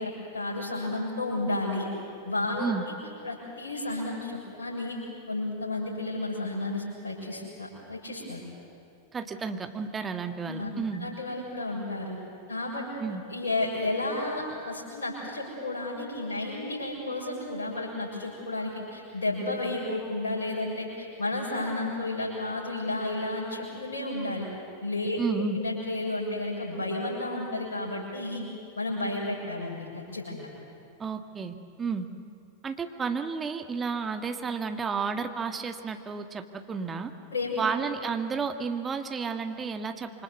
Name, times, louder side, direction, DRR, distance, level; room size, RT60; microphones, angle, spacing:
voice 1, 0.0-1.9 2.2-2.7 3.2-5.0 5.3-8.4 10.4-10.7 11.0-12.2 12.5-12.8 13.3-24.5 24.8-25.2 25.5-28.4 28.7-30.5 37.3-37.7, left 2 dB, 70° left, -4 dB, 6.5 m, -32 dB
voice 2, 9.1-11.1 13.0-13.2 25.2-25.6 31.0-32.1 32.6-37.1 37.6-40.2, right 5 dB, 20° right, 7 dB, 1.7 m, -32 dB
27.0 x 24.5 x 8.1 m, 2.5 s
figure-of-eight pair, 90°, 0 cm